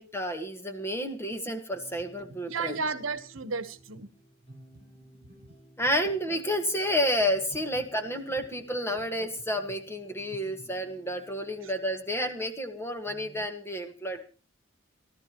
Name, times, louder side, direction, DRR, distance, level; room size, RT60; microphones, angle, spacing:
voice 1, 0.0-2.8 5.8-14.2, equal, 10° left, 5 dB, 1.6 m, -30 dB
sound 1, 1.7-12.7 13.0-13.5, equal, 30° left, 6.1 m, -57 dB
voice 2, 2.5-4.1 4.5-4.6 11.6-11.7, right 4 dB, 75° right, 13 dB, 1.1 m, -33 dB
28.0 x 12.5 x 3.0 m, 0.35 s
head